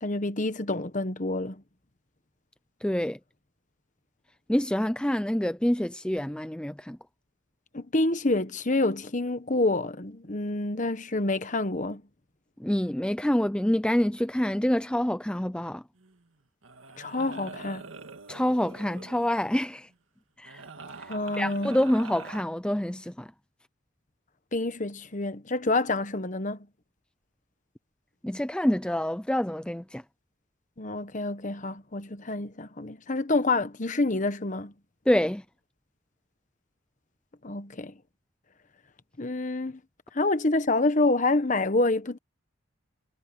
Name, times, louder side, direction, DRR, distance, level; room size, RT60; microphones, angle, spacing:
voice 1, 0.0-1.6 7.7-12.0 17.0-17.9 21.1-21.7 24.5-26.6 30.8-34.7 37.4-37.9 39.2-39.8 40.1-42.2, left 2 dB, 40° left, 1.1 m, -27 dB
voice 2, 2.8-3.2 4.5-7.0 12.6-15.8 18.3-19.9 20.4-20.6 21.0-23.3 28.2-30.0 35.1-35.4, equal, 5° left, 0.4 m, -27 dB
sound 1, 16.0-16.2 16.6-19.5 20.4-22.4, right 4 dB, 90° right, 1.8 m, -44 dB
head